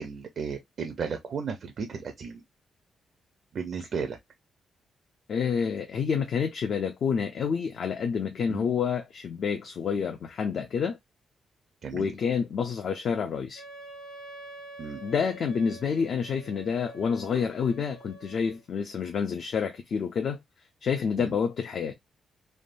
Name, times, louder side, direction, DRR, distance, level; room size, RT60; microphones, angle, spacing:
voice 1, 0.0-2.4 3.5-4.2 8.5-8.7 11.8-12.1 14.8-15.0 21.2-21.3, right 6 dB, 50° right, 0.5 m, -34 dB
voice 2, 5.3-11.0 11.9-13.6 15.0-20.4 20.8-21.9, left 6 dB, 55° left, 0.4 m, -28 dB
Wind instrument woodwind instrument, 13.6-18.6, right 2 dB, 75° left, 1.0 m, -47 dB
3.3 x 2.2 x 2.4 m
cardioid pair, 140°, 0 cm